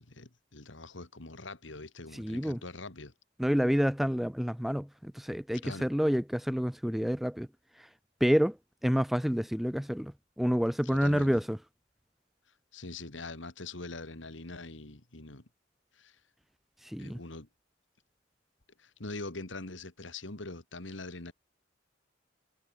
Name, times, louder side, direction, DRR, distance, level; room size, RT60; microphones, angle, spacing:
voice 1, 0.0-3.1 5.6-5.9 10.8-11.4 12.7-15.5 15.9-16.2 17.0-17.5 18.8-21.3, left 2 dB, 85° left, 2.3 m, -43 dB
voice 2, 2.1-2.6 3.4-7.5 8.2-8.6 8.8-11.6 16.8-17.2, equal, ahead, 0.3 m, -28 dB
head